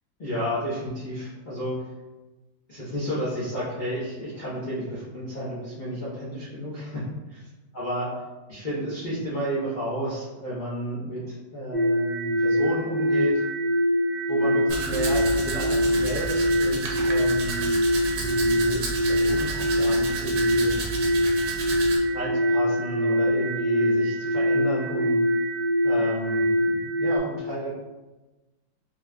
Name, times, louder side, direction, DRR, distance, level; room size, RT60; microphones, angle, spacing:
voice 1, 0.2-1.9 2.7-7.5 7.7-8.1 8.5-13.4 14.3-17.7 18.1-20.7 22.1-25.2 25.8-26.5 27.0-27.7, right 1 dB, 85° left, -10 dB, 0.4 m, -32 dB
sound 1, 11.7-27.2, equal, 45° left, 0.9 m, -24 dB
Domestic sounds home sounds, 14.7-22.0, right 3 dB, 80° right, 1.4 m, -32 dB
4.2 x 3.0 x 2.2 m, 1.1 s
omnidirectional pair, 2.1 m